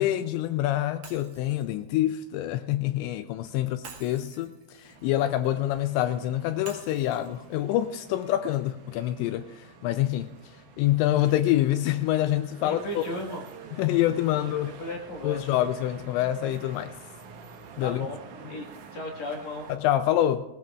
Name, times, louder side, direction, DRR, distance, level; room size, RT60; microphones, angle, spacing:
voice 1, 0.0-10.3 10.8-13.0 13.8-14.7 15.2-16.9 17.8-18.1 19.7-20.4, left 13 dB, 85° left, 2.6 m, -26 dB
Shatter, 1.0-3.1 3.8-5.9 6.7-8.7, right 5 dB, 55° right, 2.1 m, -50 dB
sound 1, 4.8-19.8, right 5 dB, 75° right, 1.8 m, -48 dB
voice 2, 12.6-13.4 14.5-15.4 17.8-18.2 18.5-18.7 18.9-19.7, left 1 dB, 55° left, 2.1 m, -35 dB
19.0 x 18.5 x 2.4 m
omnidirectional pair, 5.5 m